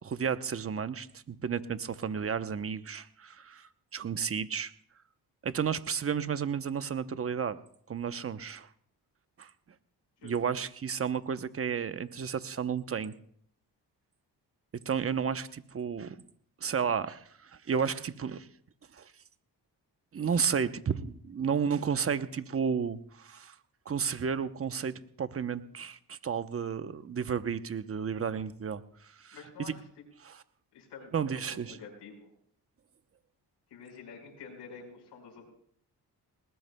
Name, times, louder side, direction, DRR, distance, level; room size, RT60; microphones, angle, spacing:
voice 1, 0.0-4.7 5.4-7.6 7.9-8.7 9.4-9.5 10.2-13.1 14.9-16.1 16.6-18.5 18.9-19.1 20.1-23.5 23.9-28.8 29.2-29.7 30.2-30.4 31.1-31.8, right 7 dB, 35° right, 12 dB, 0.8 m, -32 dB
voice 2, 29.3-29.7 30.7-31.4 31.7-32.3 33.7-35.5, left 5 dB, 90° left, 0 dB, 5.0 m, -48 dB
20.0 x 19.5 x 2.3 m, 0.63 s
cardioid pair, 75°, 41 cm